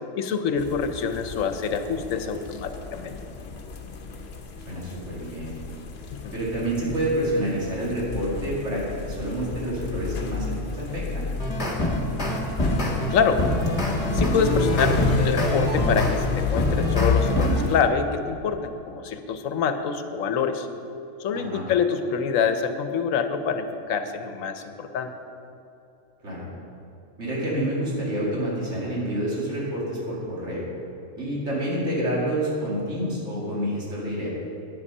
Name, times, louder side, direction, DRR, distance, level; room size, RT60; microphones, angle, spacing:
voice 1, 0.1-3.2 6.1-6.4 13.1-13.5 14.1-20.7 21.2-25.1, left 6 dB, 80° left, 8 dB, 1.1 m, -26 dB
sound 1, 0.6-17.8, left 4 dB, 55° left, 1.0 m, -30 dB
voice 2, 4.7-5.6 6.3-11.3 21.3-21.6 26.2-26.5 27.2-30.6 31.2-34.3, right 1 dB, 60° right, -6 dB, 2.8 m, -28 dB
sound 2, 11.2-16.1 16.6-17.6, left 1 dB, 25° left, 1.5 m, -25 dB
10.0 x 8.9 x 5.4 m, 2.8 s
omnidirectional pair, 1.4 m